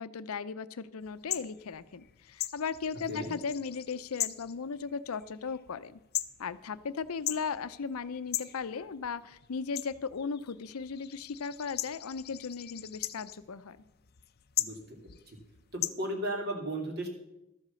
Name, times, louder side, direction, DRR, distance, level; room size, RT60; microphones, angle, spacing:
voice 1, 0.0-6.0 6.4-13.8, left 5 dB, 90° left, 15 dB, 0.6 m, -37 dB
sound 1, 1.0-15.9, left 14 dB, 50° left, 0.6 m, -40 dB
voice 2, 14.6-15.0 15.7-17.1, right 1 dB, 50° right, 2 dB, 2.6 m, -35 dB
13.0 x 8.1 x 6.9 m, 0.89 s
head